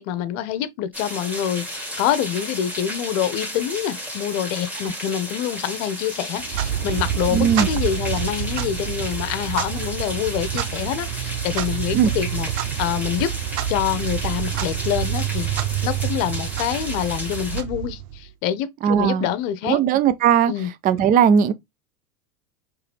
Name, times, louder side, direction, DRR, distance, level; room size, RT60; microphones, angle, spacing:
voice 1, 0.0-13.3 13.7-15.5 15.8-19.8 20.5-20.7, left 10 dB, 60° left, 0.9 m, -26 dB
sound 1, 0.9-17.6, equal, 5° right, 1.9 m, -33 dB
Clock, 6.4-18.3, right 11 dB, 55° right, 0.7 m, -28 dB
voice 2, 7.3-7.7 11.9-12.1 18.8-19.3 19.7-20.5 20.8-21.5, right 8 dB, 20° right, 0.4 m, -17 dB
4.8 x 3.3 x 3.3 m
hypercardioid pair, 105°, 44 cm